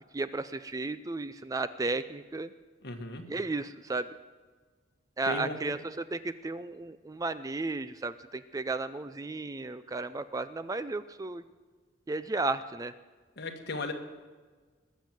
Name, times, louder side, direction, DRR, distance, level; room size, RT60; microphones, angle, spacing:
voice 1, 0.1-2.5 3.3-4.1 5.2-11.4 12.1-12.9, right 3 dB, 20° right, 13 dB, 0.4 m, -34 dB
voice 2, 2.8-3.2 5.2-5.6 13.4-13.9, left 2 dB, 55° left, 4 dB, 1.7 m, -36 dB
20.5 x 7.3 x 7.7 m, 1.4 s
head